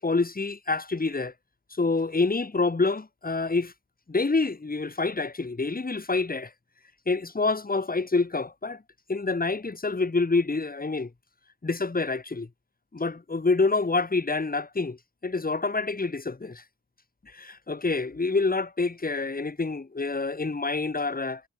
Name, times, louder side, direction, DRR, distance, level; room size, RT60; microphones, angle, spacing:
voice 1, 0.0-1.3 1.8-3.7 4.1-6.5 7.1-8.8 9.1-11.1 11.6-12.5 12.9-15.0 15.2-16.6 17.3-21.4, left 3 dB, 20° left, 1.0 m, -27 dB
cardioid pair, 50°, 49 cm